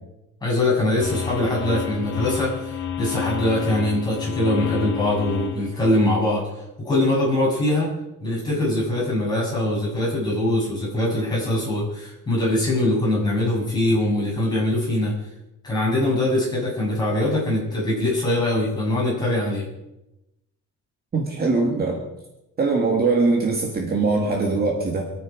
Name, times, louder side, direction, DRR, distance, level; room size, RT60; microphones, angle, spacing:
voice 1, 0.4-6.4 6.8-7.9 8.2-15.1 15.6-19.6, left 1 dB, 15° left, -6 dB, 7.5 m, -22 dB
sound 1, 1.0-6.1, left 8 dB, 85° left, 2.2 m, -30 dB
voice 2, 21.1-22.0 22.6-25.1, right 3 dB, 30° right, 0 dB, 2.2 m, -22 dB
26.5 x 9.2 x 5.3 m, 0.94 s
cardioid pair, 170°, 31 cm